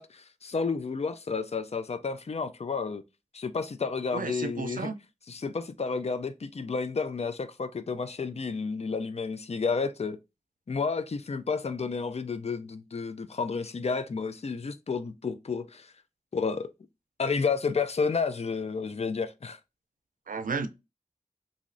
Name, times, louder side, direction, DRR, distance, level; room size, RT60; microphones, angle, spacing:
voice 1, 0.0-3.0 3.3-4.9 5.3-10.2 10.7-15.9 16.3-16.7 17.2-19.6, left 5 dB, 50° left, 0.4 m, -31 dB
voice 2, 4.1-5.0 20.3-20.7, right 4 dB, 90° right, 0.4 m, -32 dB
3.0 x 2.6 x 2.5 m
wide cardioid pair, 50°, 14 cm